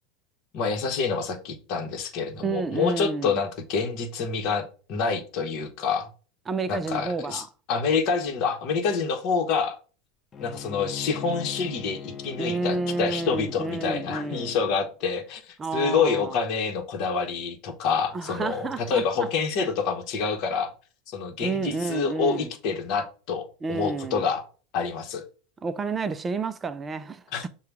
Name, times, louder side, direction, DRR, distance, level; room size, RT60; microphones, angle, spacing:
voice 1, 0.5-6.1 6.7-9.8 10.4-20.7 21.1-24.4 24.7-25.2 27.3-27.5, left 5 dB, 50° left, 1.1 m, -27 dB
voice 2, 2.4-3.3 6.5-7.5 12.4-14.5 15.6-16.3 18.1-19.3 21.4-22.5 23.6-24.2 25.6-27.2, right 3 dB, 20° right, 0.4 m, -30 dB
Bowed string instrument, 10.3-14.9, left 6 dB, 25° left, 0.6 m, -39 dB
6.7 x 2.3 x 3.4 m
supercardioid pair, 135°, 0 cm